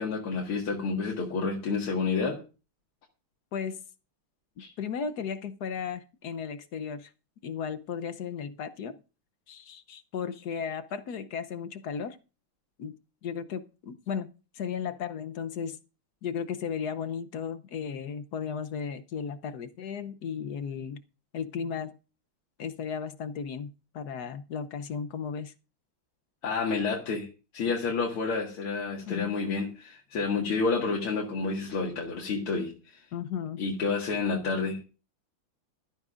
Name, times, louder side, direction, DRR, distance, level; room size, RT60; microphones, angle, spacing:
voice 1, 0.0-2.4 4.6-4.7 26.4-27.3 27.5-33.0 33.6-34.8, left 4 dB, 85° left, 2.7 m, -29 dB
voice 2, 3.5-3.8 4.8-7.1 7.4-9.0 9.5-12.2 12.8-13.0 13.2-15.8 16.2-21.0 21.3-22.0 22.6-25.5 29.1-29.4 33.1-33.6, left 7 dB, 60° left, 1.1 m, -35 dB
17.5 x 13.5 x 2.5 m
omnidirectional pair, 2.3 m